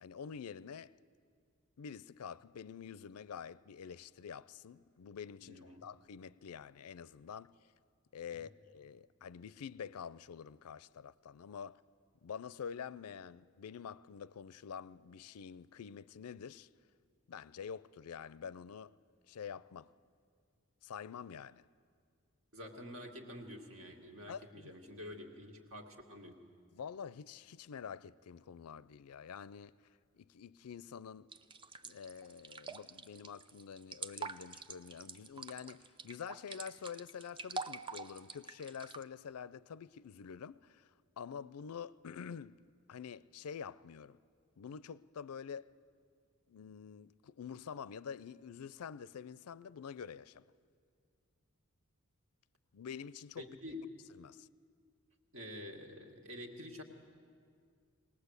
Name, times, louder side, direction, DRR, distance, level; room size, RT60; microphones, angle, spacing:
voice 1, 0.0-0.9 1.8-7.5 8.1-11.8 12.2-16.7 17.3-18.9 19.3-19.9 20.8-21.6 24.3-24.8 26.7-29.7 30.1-31.3 31.8-40.9 41.2-42.6 42.9-44.2 44.6-45.7 46.5-50.5 52.7-53.5 54.2-54.5, left 7 dB, 85° left, 0.4 m, -47 dB
voice 2, 5.4-5.9 8.3-8.5 22.5-26.3 53.4-53.9 55.3-56.8, left 1 dB, 65° right, 2.2 m, -48 dB
sound 1, 31.3-39.0, right 4 dB, 20° right, 0.5 m, -46 dB
21.0 x 18.5 x 8.2 m
head